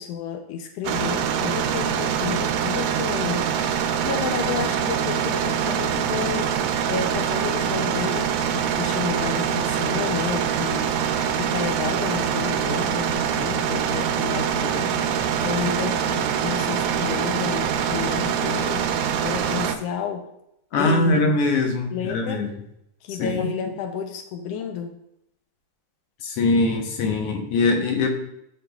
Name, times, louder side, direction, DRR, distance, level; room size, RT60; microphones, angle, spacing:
voice 1, 0.0-3.5 4.0-6.6 6.9-10.9 11.3-18.9 19.2-20.3 20.8-21.3 21.9-22.5 23.0-25.0, left 7 dB, 80° left, 5 dB, 1.4 m, -31 dB
sound 1, 0.8-19.7, right 8 dB, 80° right, 1.9 m, -24 dB
voice 2, 20.7-22.5 23.2-23.7 26.2-28.1, left 2 dB, 65° left, 2 dB, 1.7 m, -22 dB
11.0 x 5.0 x 2.3 m, 0.79 s
omnidirectional pair, 3.4 m